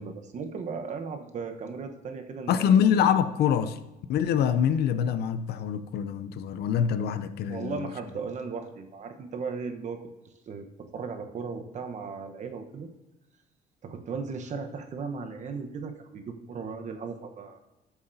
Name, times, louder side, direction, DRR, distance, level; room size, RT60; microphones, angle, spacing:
voice 1, 0.0-2.8 7.5-10.0 10.5-10.7 10.9-12.9 13.8-17.6, right 5 dB, 45° right, 1.1 m, -36 dB
voice 2, 2.5-3.8 4.1-7.9, left 8 dB, 70° left, 0.6 m, -25 dB
13.0 x 6.8 x 2.7 m
cardioid pair, 110°, 17 cm